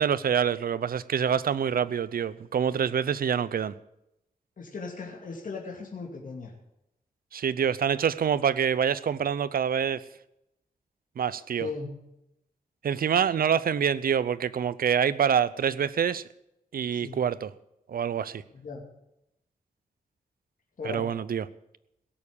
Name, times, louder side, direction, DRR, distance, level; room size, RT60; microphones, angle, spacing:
voice 1, 0.0-3.7 7.3-10.0 11.2-11.7 12.8-16.2 16.7-17.5 17.9-18.4 20.8-21.5, right 8 dB, 80° right, 0.6 m, -26 dB
voice 2, 4.6-6.5 11.6-11.9 16.9-17.2 18.6-18.8 20.8-21.1, left 4 dB, 60° left, 2.5 m, -37 dB
17.0 x 7.2 x 8.6 m
wide cardioid pair, 150°, 15 cm